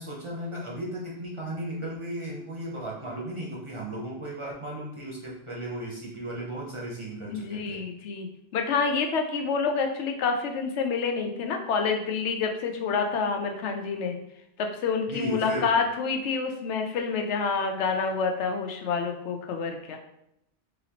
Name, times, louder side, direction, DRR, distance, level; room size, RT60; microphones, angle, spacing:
voice 1, 0.0-7.8 15.1-15.7, right 1 dB, 35° right, -4 dB, 0.6 m, -35 dB
voice 2, 7.3-14.2 14.6-20.0, left 5 dB, 85° left, 4 dB, 0.9 m, -28 dB
4.1 x 2.7 x 2.8 m, 0.78 s
omnidirectional pair, 1.2 m